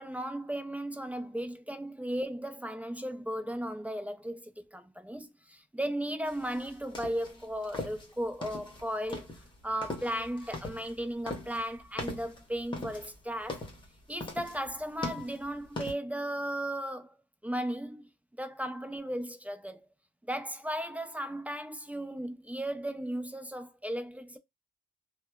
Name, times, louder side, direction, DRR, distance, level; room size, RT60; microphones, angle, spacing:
voice 1, 0.0-9.3 9.6-13.6 14.1-17.2 17.4-18.1 18.4-19.9 20.3-24.4, equal, 5° right, 0.4 m, -36 dB
sound 1, 6.3-15.9, left 2 dB, 25° left, 1.1 m, -41 dB
2.8 x 2.0 x 2.3 m
cardioid pair, 90°, 20 cm